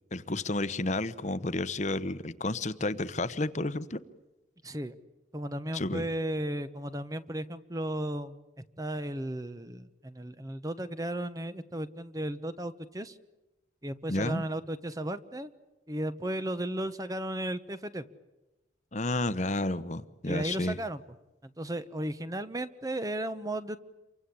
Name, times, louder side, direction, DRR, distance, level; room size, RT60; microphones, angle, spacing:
voice 1, 0.1-4.0 5.7-6.1 14.1-14.4 18.9-20.8, left 2 dB, 40° left, 14 dB, 1.0 m, -31 dB
voice 2, 4.6-4.9 5.3-8.4 8.8-13.2 13.8-15.5 15.9-18.0 20.2-21.0 21.4-23.8, right 1 dB, 20° right, 12 dB, 1.0 m, -35 dB
29.0 x 24.0 x 8.5 m, 1.0 s
head